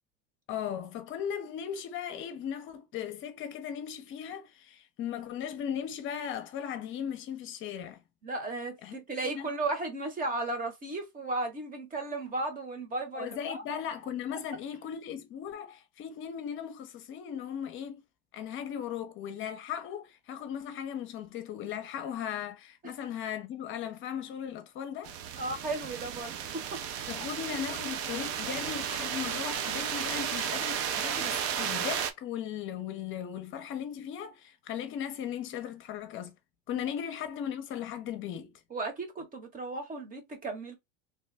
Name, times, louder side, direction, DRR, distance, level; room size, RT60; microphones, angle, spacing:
voice 1, 0.5-8.0 8.8-8.9 9.2-9.5 13.1-18.0 18.3-25.2 27.1-36.3 36.7-38.5, left 9 dB, 45° left, 0.6 m, -37 dB
voice 2, 8.2-13.6 25.4-26.8 36.7-36.8 38.7-40.8, right 2 dB, 30° right, 1.1 m, -35 dB
sound 1, 25.0-32.1, right 9 dB, 55° right, 0.6 m, -33 dB
3.0 x 2.1 x 3.4 m
supercardioid pair, 125°, 29 cm